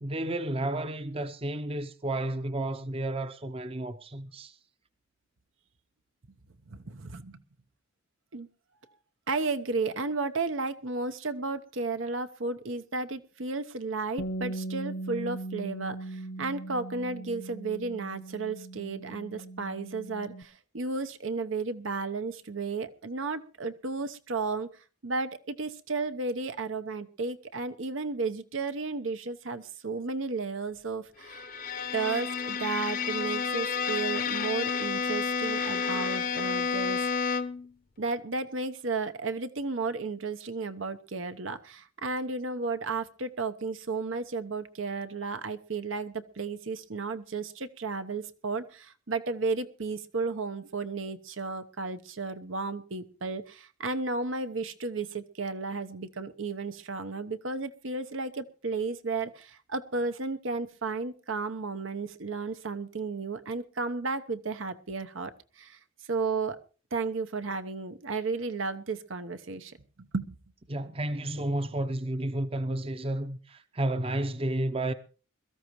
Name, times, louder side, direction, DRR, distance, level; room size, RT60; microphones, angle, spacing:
voice 1, 0.0-4.6 70.7-74.9, right 1 dB, 30° right, 0.7 m, -31 dB
voice 2, 6.7-7.4 8.3-8.5 9.3-24.7 25.0-31.4 31.9-37.1 38.0-65.8 66.1-66.6 66.9-70.4, right 3 dB, 85° right, 1.0 m, -33 dB
Bass guitar, 14.2-20.4, right 2 dB, 70° left, 0.9 m, -39 dB
Bowed string instrument, 31.2-37.7, left 5 dB, 45° left, 0.7 m, -30 dB
22.0 x 13.5 x 3.1 m
head